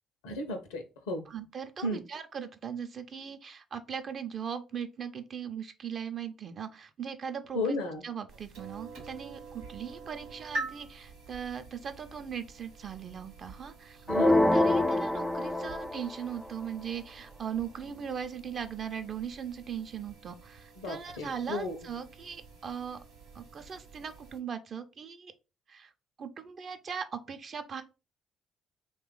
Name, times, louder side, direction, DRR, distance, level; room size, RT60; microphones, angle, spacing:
voice 1, 0.2-1.3 1.8-2.0 7.5-8.0 14.1-14.4 20.8-21.8, left 1 dB, 85° left, 0.6 m, -34 dB
voice 2, 1.3-7.8 8.0-23.0 23.3-25.3 25.7-25.9 26.2-27.8, right 7 dB, 55° right, 0.5 m, -39 dB
sound 1, 8.3-24.4, right 3 dB, 85° right, 0.9 m, -47 dB
sound 2, 14.1-16.2, left 1 dB, 5° left, 0.4 m, -25 dB
3.0 x 2.3 x 3.8 m
hypercardioid pair, 50°, 0 cm